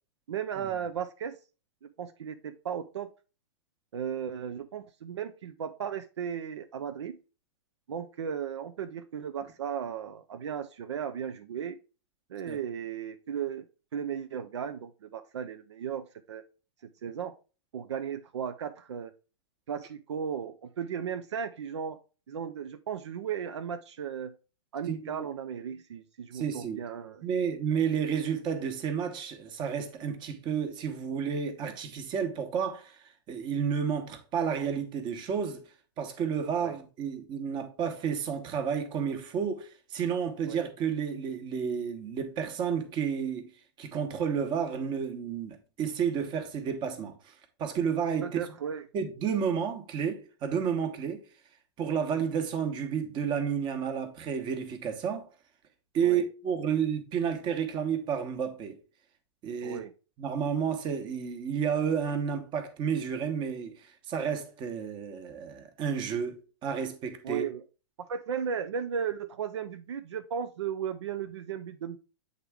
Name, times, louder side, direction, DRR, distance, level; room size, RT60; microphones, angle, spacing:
voice 1, 0.3-1.3 1.8-3.1 3.9-7.2 7.9-11.8 12.3-13.7 13.9-16.4 16.8-17.3 17.7-19.1 19.7-22.0 22.3-24.3 24.7-27.2 36.6-36.7 40.5-40.6 48.2-48.8 56.0-56.2 59.6-59.9 67.2-67.6 68.1-72.0, right 8 dB, 75° right, 0.5 m, -35 dB
voice 2, 24.9-25.2 26.3-26.8 27.2-33.0 33.3-35.6 36.0-43.5 43.8-47.3 47.6-48.4 48.9-51.2 51.8-55.3 55.9-58.8 59.4-59.8 60.2-67.4, right 7 dB, 30° right, 1.1 m, -31 dB
7.8 x 3.5 x 3.5 m
hypercardioid pair, 115°, 15 cm